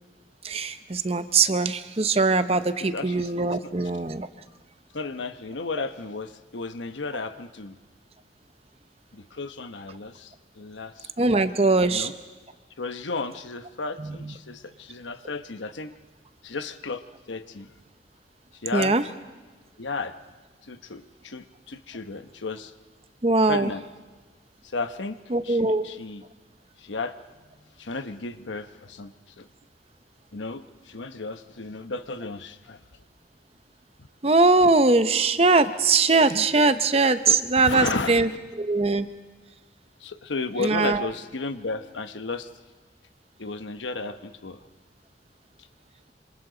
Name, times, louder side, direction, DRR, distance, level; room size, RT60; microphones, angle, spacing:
voice 1, 0.4-4.3 11.2-12.1 14.0-14.3 18.7-19.0 23.2-23.7 25.3-25.8 34.2-38.3 38.6-39.1 40.6-41.1, right 3 dB, 35° right, 11 dB, 0.7 m, -21 dB
voice 2, 2.8-3.3 3.6-3.7 4.9-7.8 9.1-11.1 11.9-12.1 12.8-15.9 16.4-17.7 18.6-19.0 19.8-20.2 20.6-22.7 23.4-23.8 24.7-25.2 25.4-26.2 26.8-27.2 27.8-29.5 30.3-32.8 37.3-38.4 40.0-42.5 43.4-44.6, left 3 dB, 90° left, 10 dB, 1.0 m, -33 dB
27.5 x 27.0 x 3.9 m, 1.3 s
head